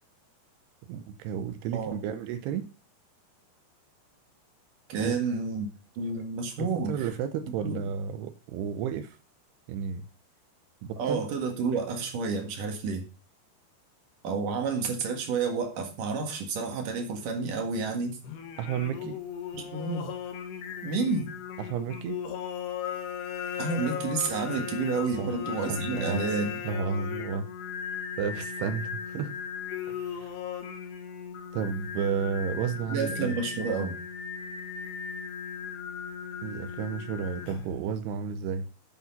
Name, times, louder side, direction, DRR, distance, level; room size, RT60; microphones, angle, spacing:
voice 1, 0.9-2.7 4.9-5.2 6.6-9.2 9.7-10.1 10.8-11.3 18.6-19.2 21.6-22.2 25.2-25.3 25.7-26.3 26.6-27.5 28.2-29.3 29.9-30.4 31.5-33.4 36.4-38.7, right 7 dB, 80° right, 10 dB, 2.7 m, -32 dB
voice 2, 4.9-5.7 6.0-7.1 7.6-7.8 11.0-13.1 14.2-18.2 19.0-19.1 19.5-20.1 20.8-21.3 23.6-26.6 32.9-34.0, right 4 dB, 55° right, 4 dB, 3.0 m, -30 dB
Singing, 18.2-37.8, left 7 dB, 75° left, 3.5 m, -37 dB
9.3 x 8.4 x 5.5 m, 0.35 s
omnidirectional pair, 5.0 m